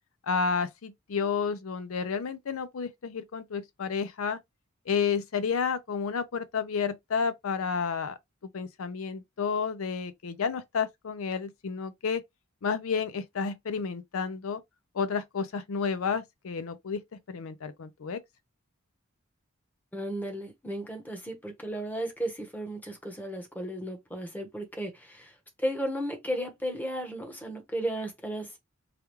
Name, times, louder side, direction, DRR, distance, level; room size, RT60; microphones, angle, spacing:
voice 1, 0.2-4.4 4.9-8.2 8.5-12.2 12.6-14.6 14.9-17.0 17.3-18.2, left 5 dB, 80° left, 0.5 m, -31 dB
voice 2, 19.9-28.6, right 1 dB, 10° left, 1.0 m, -34 dB
4.8 x 2.3 x 3.0 m
head